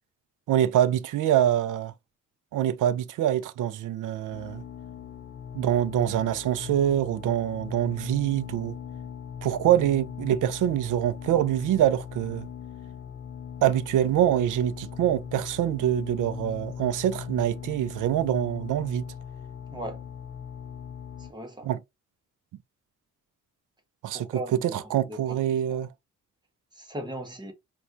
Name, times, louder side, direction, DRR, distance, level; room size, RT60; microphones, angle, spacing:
voice 1, 0.5-1.9 2.5-4.6 5.5-8.8 9.4-12.5 13.6-19.0 21.6-21.8 24.0-25.9, right 11 dB, 80° right, 0.5 m, -25 dB
sound 1, 4.3-21.3, left 8 dB, 35° left, 0.4 m, -40 dB
voice 2, 19.7-20.0 21.2-21.7 24.1-25.4 25.7-25.8 26.7-27.5, right 1 dB, 15° right, 0.9 m, -38 dB
4.3 x 2.3 x 2.5 m
cardioid pair, 120°, 30 cm